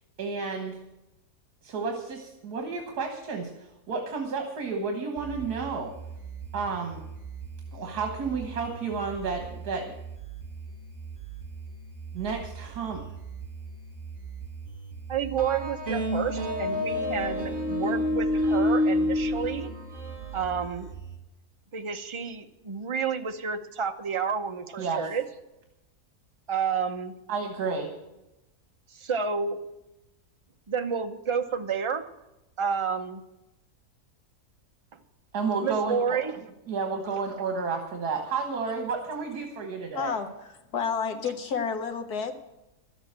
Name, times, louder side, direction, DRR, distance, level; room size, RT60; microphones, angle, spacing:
voice 1, 0.2-0.8 1.6-5.9 6.5-7.0 7.7-9.9 12.1-13.0 24.8-25.0 27.3-27.9 35.3-36.2 36.7-40.1, right 4 dB, 75° right, 3 dB, 2.0 m, -31 dB
sound 1, 5.2-21.2, right 5 dB, 10° left, 2.0 m, -41 dB
voice 2, 15.1-19.7 20.3-20.9 21.7-25.2 26.5-27.1 28.9-29.6 30.7-32.1 32.6-33.2 34.9-35.0 35.6-36.4, right 6 dB, 30° right, 7 dB, 0.6 m, -30 dB
sound 2, 15.4-20.6, left 1 dB, 50° right, 2.2 m, -28 dB
voice 3, 40.0-42.3, left 6 dB, 75° left, 5 dB, 1.9 m, -30 dB
12.5 x 8.1 x 8.8 m, 0.94 s
omnidirectional pair, 1.7 m